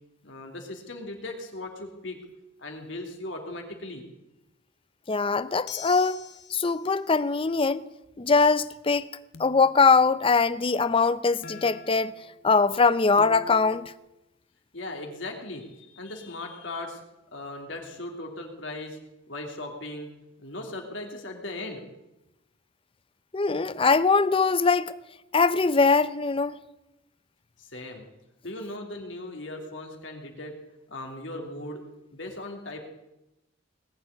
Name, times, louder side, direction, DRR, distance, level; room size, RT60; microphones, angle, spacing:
voice 1, 0.2-2.2 2.6-4.0 14.7-17.0 17.3-19.0 19.3-20.1 20.4-21.8 27.6-28.1 28.4-30.5 30.9-31.8 32.1-32.8, left 2 dB, 85° left, 3.1 m, -38 dB
voice 2, 5.1-6.2 6.5-7.8 8.2-9.1 9.4-12.1 12.4-13.9 23.3-24.9 25.3-26.6, left 4 dB, 30° left, 0.6 m, -22 dB
sound 1, 5.7-6.7 9.3-10.2 11.4-12.7 13.2-13.9, left 5 dB, 60° left, 1.1 m, -43 dB
19.5 x 7.0 x 9.7 m
head